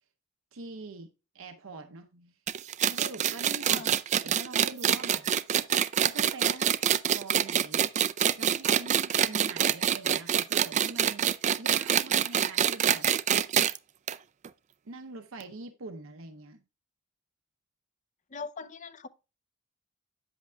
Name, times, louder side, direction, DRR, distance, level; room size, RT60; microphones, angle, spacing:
voice 1, 0.5-1.1 1.3-2.4 2.8-3.8 4.2-5.3 6.0-7.9 8.4-13.1 14.9-16.6, right 3 dB, 75° right, 0.8 m, -43 dB
sound 1, 2.5-13.8 14.1-14.2 14.4-14.5 15.4-15.5, right 9 dB, 35° right, 0.3 m, -25 dB
voice 2, 18.3-19.1, left 4 dB, 35° left, 0.5 m, -40 dB
9.3 x 8.0 x 2.3 m
head